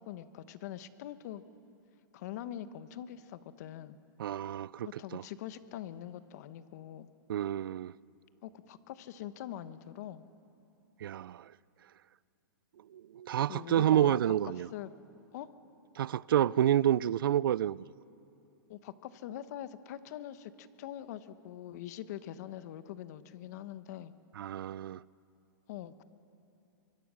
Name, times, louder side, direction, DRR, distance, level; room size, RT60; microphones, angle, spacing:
voice 1, 0.0-1.4 2.1-4.0 4.8-7.1 8.4-10.2 13.5-14.9 15.3-15.5 18.7-24.1 25.7-26.0, left 11 dB, 50° left, 1.0 m, -43 dB
voice 2, 4.2-5.2 7.3-7.9 11.0-11.4 12.9-14.7 16.0-17.8 24.4-25.0, right 11 dB, 80° right, 0.4 m, -29 dB
25.0 x 23.5 x 6.3 m
hypercardioid pair, 150°, 12 cm